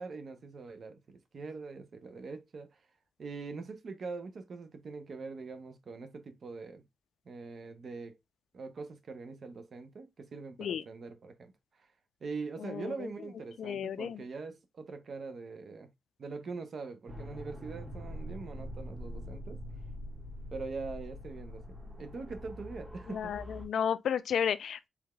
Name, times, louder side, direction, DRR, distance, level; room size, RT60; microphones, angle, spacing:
voice 1, 0.0-2.8 3.2-6.8 7.3-8.2 8.5-11.5 12.2-15.9 16.2-19.6 20.5-23.3, right 4 dB, 50° right, 0.8 m, -43 dB
voice 2, 12.6-13.1 13.6-14.2 23.1-24.9, left 8 dB, 75° left, 0.4 m, -33 dB
sound 1, 17.1-23.6, equal, 25° right, 1.5 m, -44 dB
4.8 x 3.5 x 2.2 m
cardioid pair, 100°, 0 cm